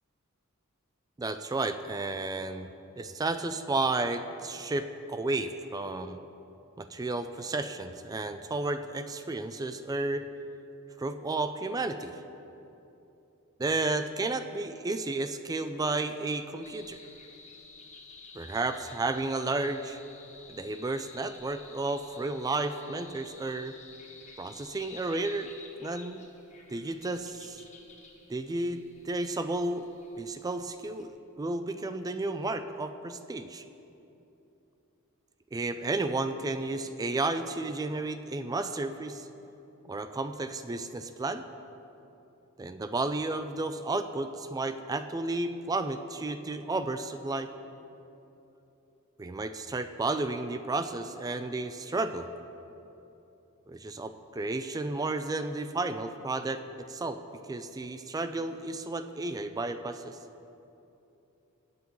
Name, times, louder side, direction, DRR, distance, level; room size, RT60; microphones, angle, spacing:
voice 1, 1.2-2.7 3.0-6.2 6.8-10.3 11.0-12.1 13.6-17.0 18.3-20.0 20.5-23.8 24.4-25.5 25.8-26.2 26.7-27.6 28.3-29.9 30.2-33.7 35.5-39.3 39.9-41.5 42.6-47.5 49.2-52.3 53.7-57.2 57.5-60.2, right 2 dB, 15° right, 9 dB, 0.3 m, -32 dB
sound 1, 16.6-31.0, left 4 dB, 35° left, 1.2 m, -52 dB
18.5 x 8.0 x 3.1 m, 2.9 s
head